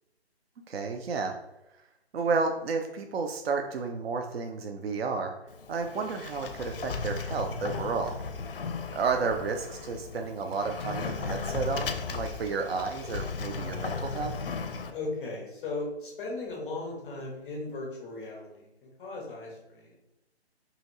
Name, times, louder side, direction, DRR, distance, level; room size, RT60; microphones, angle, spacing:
voice 1, 0.7-1.4 2.1-5.3 5.7-8.2 8.9-14.3, right 4 dB, 65° right, 4 dB, 0.5 m, -31 dB
Sliding door, 5.5-14.9, left 4 dB, 55° left, 0.4 m, -36 dB
voice 2, 14.9-20.1, left 3 dB, ahead, -2 dB, 0.5 m, -37 dB
2.8 x 2.8 x 4.1 m, 0.93 s
figure-of-eight pair, 145°, 33 cm